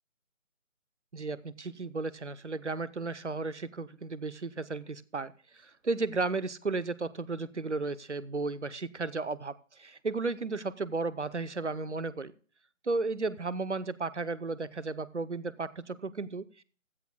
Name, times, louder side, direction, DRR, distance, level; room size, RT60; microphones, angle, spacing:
voice 1, 1.1-12.3 12.8-16.6, right 3 dB, 60° right, 17 dB, 0.8 m, -34 dB
16.0 x 11.0 x 2.2 m, 0.42 s
figure-of-eight pair, 160°, 40 cm